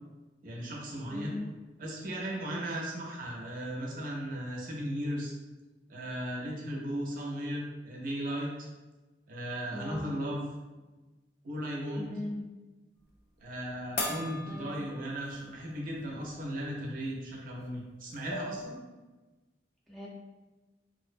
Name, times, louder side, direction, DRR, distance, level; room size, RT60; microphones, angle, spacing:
voice 1, 0.4-1.3 1.8-5.3 5.9-8.7 9.3-10.4 11.4-12.1 13.4-18.8, equal, 50° right, -2 dB, 0.5 m, -36 dB
voice 2, 1.1-1.5 9.7-10.1 12.0-12.5 14.5-14.7 19.9-20.1, left 1 dB, ahead, -7 dB, 0.5 m, -39 dB
sound 1, 14.0-15.6 16.0-16.1 17.6-17.7 18.0-18.7, left 2 dB, 60° left, 0.5 m, -38 dB
2.5 x 2.0 x 2.4 m, 1.2 s
head